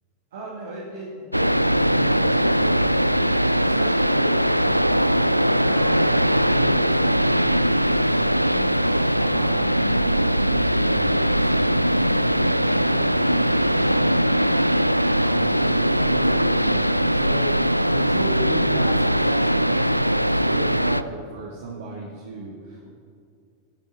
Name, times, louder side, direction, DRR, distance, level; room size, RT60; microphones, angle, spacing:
voice 1, 0.3-8.7 9.1-22.9, right 2 dB, 60° right, -4 dB, 2.1 m, -36 dB
sound 1, 1.3-21.0, equal, 90° right, 0.3 m, -20 dB
20.0 x 10.5 x 3.8 m, 2.3 s
figure-of-eight pair, 90°, 0 cm